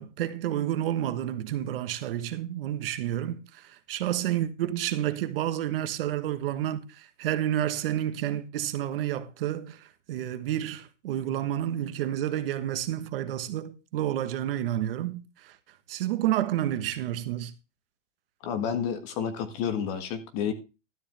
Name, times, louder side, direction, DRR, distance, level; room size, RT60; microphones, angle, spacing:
voice 1, 0.0-15.5 15.9-17.5, right 12 dB, 50° right, 1.3 m, -30 dB
voice 2, 18.4-20.5, left 7 dB, 30° left, 1.7 m, -30 dB
13.0 x 10.0 x 3.4 m
supercardioid pair, 165°, 37 cm